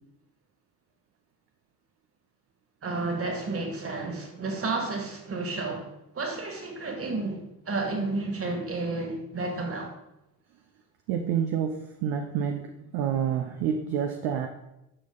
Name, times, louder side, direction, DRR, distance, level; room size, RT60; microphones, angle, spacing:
voice 1, 2.8-9.9, right 3 dB, 30° right, 2.2 m, -31 dB
voice 2, 11.1-14.5, right 8 dB, 50° right, 0.9 m, -28 dB
9.9 x 6.5 x 4.0 m
figure-of-eight pair, 55°, 49 cm